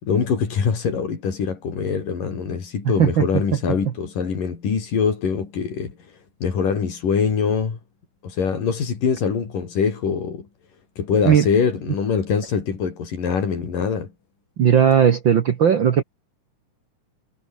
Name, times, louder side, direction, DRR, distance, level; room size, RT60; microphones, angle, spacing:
voice 1, 0.0-5.9 6.4-7.8 8.2-10.5 11.0-14.1, left 6 dB, 90° left, 5.7 m, -23 dB
voice 2, 2.8-3.3 3.8-3.9 11.2-11.5 14.6-16.0, right 8 dB, 60° right, 1.3 m, -17 dB
omnidirectional pair, 3.7 m